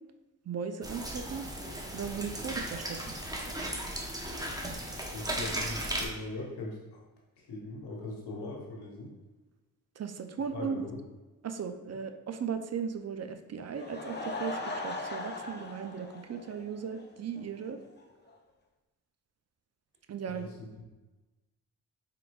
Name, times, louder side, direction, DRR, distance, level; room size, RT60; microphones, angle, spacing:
voice 1, 0.5-1.4 1.9-3.0 10.0-10.8 11.4-14.6 14.8-17.8 20.1-20.5, right 6 dB, 40° right, 8 dB, 0.4 m, -37 dB
sound 1, 0.8-6.1, right 1 dB, 10° right, 0.8 m, -36 dB
voice 2, 5.1-7.0 7.4-9.1 10.5-11.0 20.3-20.8, left 2 dB, 85° left, -2 dB, 1.1 m, -40 dB
Laughter / Crowd, 13.6-17.0 17.4-17.5 18.0-18.1 18.3-18.4, left 2 dB, 25° left, 0.7 m, -39 dB
4.5 x 3.8 x 2.3 m, 1.1 s
supercardioid pair, 50°, 39 cm